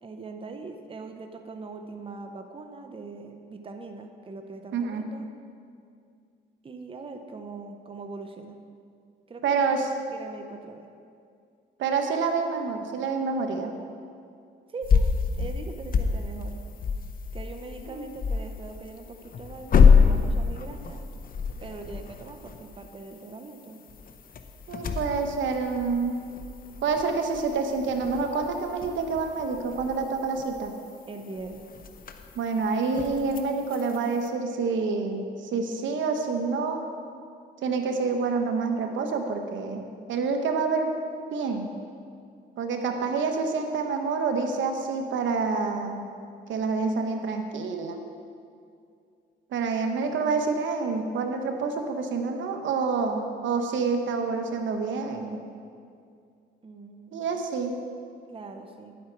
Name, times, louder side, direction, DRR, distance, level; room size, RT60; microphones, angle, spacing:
voice 1, 0.0-5.3 6.6-8.6 9.3-9.7 10.1-10.9 14.7-15.1 15.4-16.6 17.3-21.0 21.6-23.8 31.1-31.7 56.6-57.4 58.3-58.9, right 3 dB, 25° right, 5 dB, 0.8 m, -41 dB
voice 2, 4.7-5.1 9.4-9.9 11.8-13.7 17.9-18.0 24.7-26.2 26.8-30.7 32.4-36.8 37.6-41.7 42.6-46.1 46.5-48.0 49.5-55.4 57.1-57.8, right 4 dB, 70° right, 5 dB, 1.1 m, -27 dB
sound 1, 14.8-34.3, left 5 dB, 45° left, 0.8 m, -27 dB
11.0 x 8.5 x 4.6 m, 2.3 s
cardioid pair, 90°, 20 cm